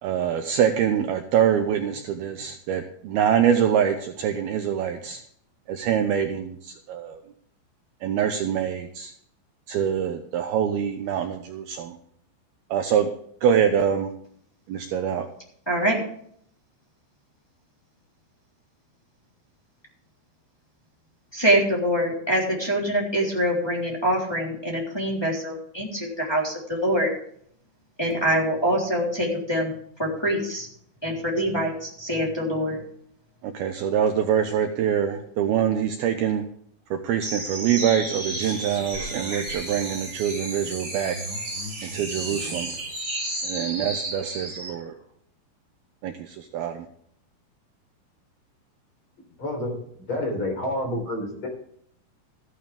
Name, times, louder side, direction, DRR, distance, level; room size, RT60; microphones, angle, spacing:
voice 1, 0.0-5.2 5.7-7.2 8.0-9.1 9.7-12.0 12.7-13.1 13.4-14.1 14.7-15.3 33.5-36.4 36.9-41.2 41.8-42.7 43.4-44.9 46.0-46.8, right 8 dB, 90° right, 6 dB, 2.2 m, -24 dB
voice 2, 15.7-16.0 21.3-27.1 28.0-29.7 30.0-30.7 31.0-32.8, equal, 5° left, -3 dB, 2.5 m, -24 dB
sound 1, 37.2-44.8, right 2 dB, 15° right, 3.9 m, -32 dB
voice 3, 49.4-49.8 50.1-51.5, left 1 dB, 30° left, 1 dB, 4.1 m, -28 dB
14.5 x 11.5 x 3.5 m, 0.64 s
omnidirectional pair, 5.6 m